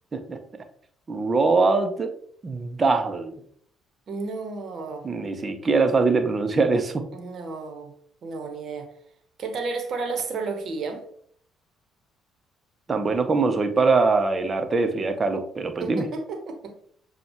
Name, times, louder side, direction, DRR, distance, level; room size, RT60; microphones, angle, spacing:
voice 1, 1.1-2.1 2.4-3.3 5.0-7.0 12.9-16.1, right 3 dB, 35° right, 8 dB, 0.7 m, -22 dB
voice 2, 4.1-5.1 7.1-7.9 8.2-8.9 9.4-11.0 15.8-16.7, right 4 dB, 55° right, 5 dB, 1.0 m, -32 dB
7.0 x 2.4 x 2.9 m, 0.63 s
hypercardioid pair, 50°, 0 cm